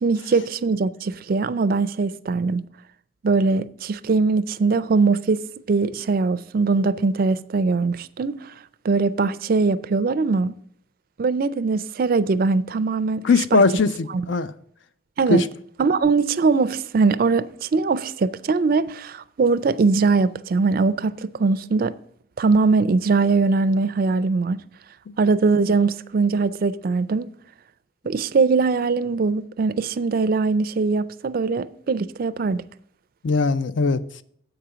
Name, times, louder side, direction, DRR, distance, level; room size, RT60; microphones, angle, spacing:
voice 1, 0.0-2.6 3.2-8.5 8.8-10.5 11.2-13.3 13.5-13.6 14.1-14.2 15.2-15.4 15.8-22.0 22.4-24.6 25.2-27.3 28.0-32.6, right 4 dB, 45° right, 0.4 m, -21 dB
voice 2, 13.2-14.5 15.3-15.5 25.1-25.2 33.2-34.0, left 3 dB, 70° left, 0.5 m, -20 dB
7.9 x 5.0 x 6.8 m
head